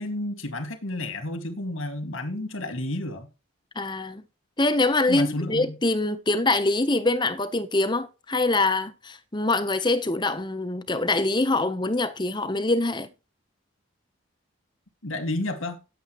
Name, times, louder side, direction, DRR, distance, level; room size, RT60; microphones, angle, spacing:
voice 1, 0.0-3.3 5.1-5.8 15.0-15.8, left 1 dB, 80° left, 2.2 m, -31 dB
voice 2, 3.8-4.2 4.6-13.1, left 2 dB, 20° left, 1.0 m, -24 dB
19.0 x 8.0 x 3.1 m
head